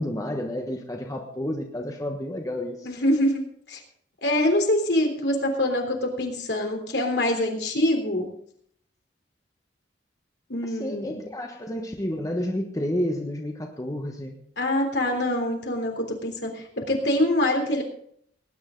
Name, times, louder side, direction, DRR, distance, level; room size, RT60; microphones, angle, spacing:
voice 1, 0.0-2.9 10.7-14.4, left 1 dB, 20° left, 2 dB, 1.3 m, -30 dB
voice 2, 2.8-3.4 3.7-3.8 4.2-8.3 10.5-11.2 14.6-17.8, left 1 dB, 65° left, 3 dB, 3.5 m, -24 dB
19.5 x 10.0 x 3.9 m, 0.63 s
head